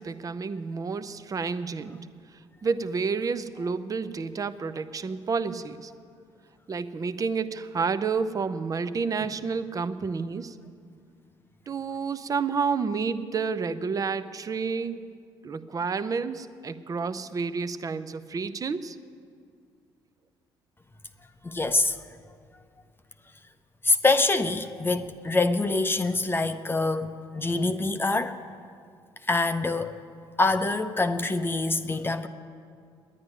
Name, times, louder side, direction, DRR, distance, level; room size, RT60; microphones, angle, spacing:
voice 1, 0.0-2.0 2.6-5.9 6.7-10.6 11.7-15.0 15.4-19.0, right 5 dB, 35° right, 12 dB, 0.6 m, -30 dB
voice 2, 21.4-22.0 23.8-28.5 29.3-29.9 30.4-32.3, left 3 dB, 20° left, 8 dB, 0.6 m, -25 dB
10.0 x 9.6 x 9.8 m, 2.2 s
supercardioid pair, 65°, 10 cm